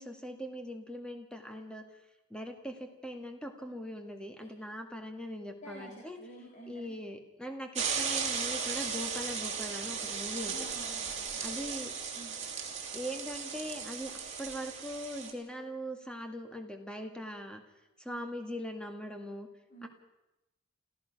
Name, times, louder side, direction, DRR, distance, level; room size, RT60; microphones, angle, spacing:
voice 1, 0.0-1.9 2.3-6.2 6.7-10.7 11.4-11.9 12.9-17.6 18.0-19.5 19.8-19.9, equal, 5° left, 5 dB, 2.0 m, -41 dB
voice 2, 5.6-6.8 10.5-11.5 12.1-12.3 18.1-18.3 19.7-19.9, right 1 dB, 40° left, -2 dB, 3.7 m, -49 dB
sound 1, 7.7-15.3, right 6 dB, 35° right, 2.9 m, -36 dB
28.0 x 15.0 x 6.1 m, 0.96 s
head